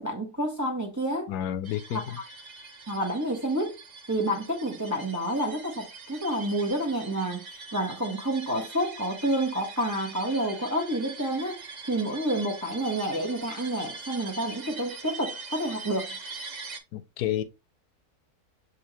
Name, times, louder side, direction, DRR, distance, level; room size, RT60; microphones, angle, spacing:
voice 1, 0.0-1.3 1.9-2.0 2.9-3.8 4.1-16.2, right 1 dB, 15° right, 0.8 m, -29 dB
voice 2, 1.3-2.2 16.9-17.4, left 11 dB, 90° left, 1.2 m, -30 dB
sound 1, 1.6-16.8, right 4 dB, 45° right, 0.5 m, -42 dB
6.4 x 2.8 x 3.0 m
omnidirectional pair, 1.6 m